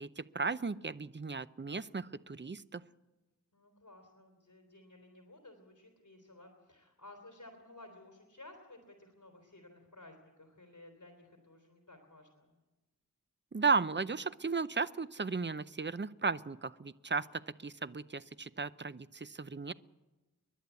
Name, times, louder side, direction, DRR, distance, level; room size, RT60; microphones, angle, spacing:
voice 1, 0.0-2.8 13.5-19.7, right 4 dB, 35° right, 15 dB, 0.6 m, -35 dB
voice 2, 3.5-12.6, left 2 dB, 60° left, 4 dB, 3.4 m, -56 dB
30.0 x 11.5 x 8.2 m, 1.1 s
wide cardioid pair, 65°, 33 cm